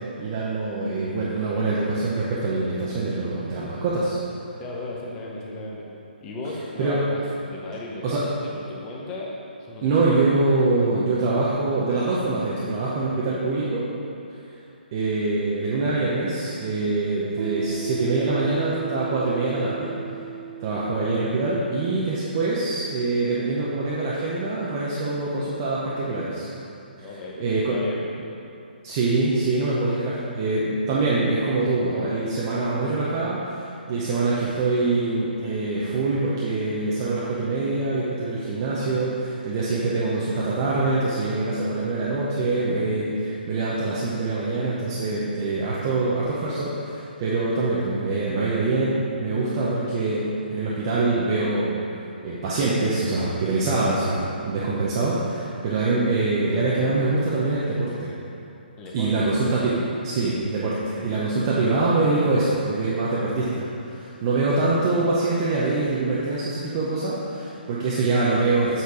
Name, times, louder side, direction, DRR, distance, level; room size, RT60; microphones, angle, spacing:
voice 1, 0.2-4.2 6.8-7.0 8.0-8.2 9.8-13.8 14.9-19.9 20.6-26.5 27.4-27.8 28.8-51.8 52.2-58.1 58.9-59.8 60.0-68.8, right 3 dB, 25° right, -7 dB, 0.7 m, -24 dB
voice 2, 4.6-5.9 6.2-10.0 27.0-28.1 58.8-59.2, left 2 dB, 10° left, -3 dB, 0.8 m, -36 dB
Piano, 17.4-24.6, right 8 dB, 65° right, 0.7 m, -37 dB
8.3 x 4.4 x 4.8 m, 2.7 s
hypercardioid pair, 170°, 6 cm